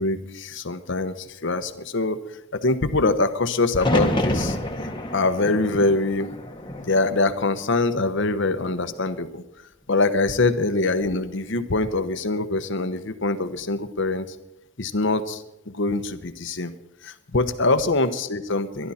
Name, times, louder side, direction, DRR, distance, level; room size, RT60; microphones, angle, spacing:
voice 1, 0.0-2.2 2.5-4.6 5.1-6.3 6.8-9.4 9.9-14.3 14.8-16.7 17.0-18.9, left 3 dB, 60° left, 11 dB, 1.0 m, -24 dB
sound 1, 3.7-7.8 8.2-8.9 10.8-11.3, left 1 dB, 20° left, 1.3 m, -28 dB
22.5 x 12.0 x 4.3 m, 0.92 s
head